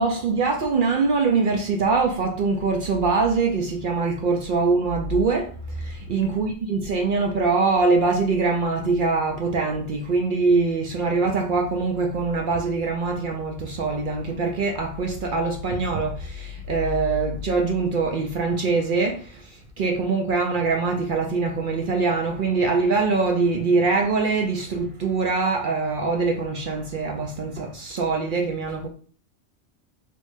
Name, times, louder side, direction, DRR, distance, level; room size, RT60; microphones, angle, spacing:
voice 1, 0.0-28.9, right 4 dB, 60° right, 0.5 m, -23 dB
3.1 x 2.6 x 3.2 m
omnidirectional pair, 1.3 m